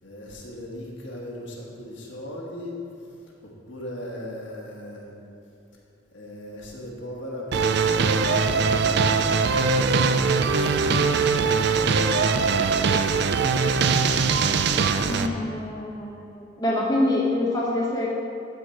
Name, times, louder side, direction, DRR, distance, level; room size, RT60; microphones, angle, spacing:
voice 1, 0.0-5.2 6.1-9.2 9.7-11.1, left 1 dB, 65° left, -3 dB, 1.5 m, -38 dB
sound 1, 7.5-15.3, right 4 dB, 55° right, 0.4 m, -21 dB
voice 2, 15.0-18.1, left 1 dB, 20° left, -5 dB, 1.0 m, -26 dB
12.0 x 4.3 x 4.5 m, 2.7 s
head